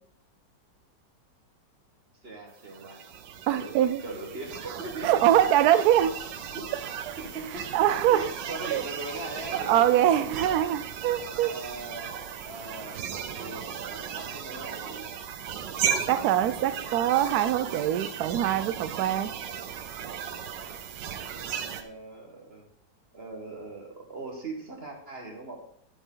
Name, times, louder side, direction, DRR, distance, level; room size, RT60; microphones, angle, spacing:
voice 1, 2.2-3.1 3.5-5.2 6.2-6.7 7.2-7.7 8.1-10.7 11.5-15.1 21.6-22.7 23.1-25.6, right 2 dB, 35° right, 1 dB, 1.7 m, -40 dB
sound 1, 2.6-21.8, right 8 dB, 90° right, 1.5 m, -36 dB
voice 2, 3.5-4.0 5.0-6.1 7.1-7.2 7.7-8.3 8.7-8.8 9.5-11.5 16.1-19.3, right 11 dB, 70° right, 12 dB, 1.1 m, -23 dB
9.0 x 8.0 x 3.9 m, 0.66 s
omnidirectional pair, 1.9 m